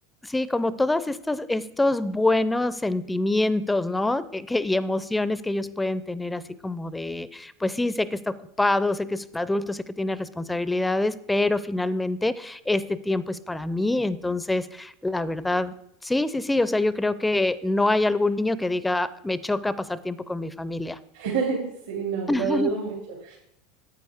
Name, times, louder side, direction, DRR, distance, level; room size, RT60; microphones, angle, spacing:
voice 1, 0.2-15.7 16.0-21.0 22.3-22.7, left 2 dB, 10° left, 17 dB, 0.5 m, -25 dB
voice 2, 21.1-23.4, right 5 dB, 80° right, -4 dB, 2.3 m, -28 dB
9.4 x 8.8 x 3.5 m, 0.76 s
hypercardioid pair, 85°, 0 cm